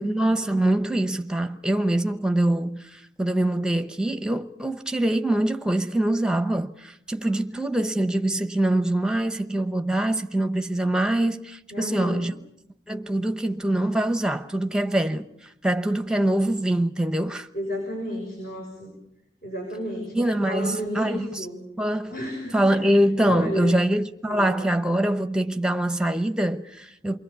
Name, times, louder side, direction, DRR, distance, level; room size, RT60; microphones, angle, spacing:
voice 1, 0.0-12.3 12.9-17.5 20.1-21.4 21.8-22.1 22.5-27.2, right 1 dB, 5° right, 0.9 m, -24 dB
voice 2, 11.7-12.3 17.5-18.9 19.4-20.2 20.5-21.6 22.1-22.9 23.2-23.7 24.3-24.6, equal, 55° left, 6.3 m, -32 dB
28.5 x 22.0 x 6.9 m
head